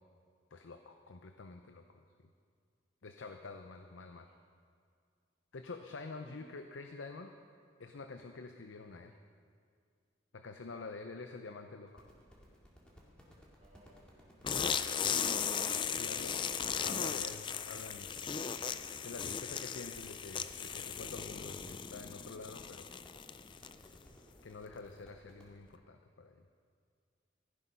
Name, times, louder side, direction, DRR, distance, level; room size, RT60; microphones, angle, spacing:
voice 1, 0.5-2.1 3.0-4.3 5.5-7.3 7.8-9.2 10.3-12.1 15.9-16.4 16.8-18.1 19.0-23.0 24.4-26.4, left 3 dB, 80° left, 6 dB, 0.6 m, -48 dB
sound 1, 11.9-25.5, equal, 5° left, 2.1 m, -60 dB
voice 2, 13.6-14.9, equal, 35° right, -3 dB, 2.6 m, -65 dB
sound 2, 14.4-23.9, left 7 dB, 25° left, 0.3 m, -37 dB
15.5 x 10.0 x 5.6 m, 2.2 s
head